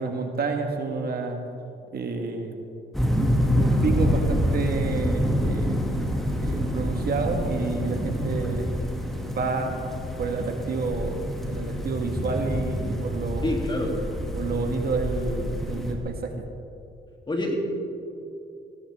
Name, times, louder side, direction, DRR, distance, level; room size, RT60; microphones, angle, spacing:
voice 1, 0.0-1.4 1.9-2.6 3.5-5.8 6.4-8.8 9.3-9.8 10.2-13.5 14.4-16.4, right 4 dB, 50° right, 4 dB, 1.7 m, -29 dB
sound 1, 2.9-15.9, equal, ahead, 2.3 m, -27 dB
voice 2, 13.4-14.0 17.3-17.5, left 1 dB, 25° left, 0 dB, 3.0 m, -26 dB
18.5 x 16.5 x 3.6 m, 2.6 s
cardioid pair, 90°, 20 cm